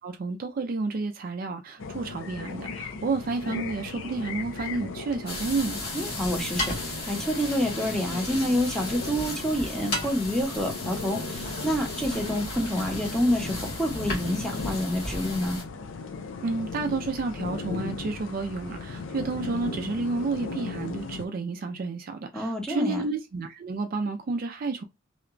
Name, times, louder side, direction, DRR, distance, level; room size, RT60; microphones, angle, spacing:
voice 1, 0.0-5.8 16.4-24.8, right 3 dB, 45° right, 0.3 m, -30 dB
sound 1, 1.8-21.3, left 4 dB, 75° left, 0.4 m, -37 dB
sound 2, 5.3-15.6, left 1 dB, 50° left, 1.4 m, -35 dB
voice 2, 5.9-15.6 22.3-23.0, equal, 5° left, 0.8 m, -28 dB
2.8 x 2.2 x 2.5 m
head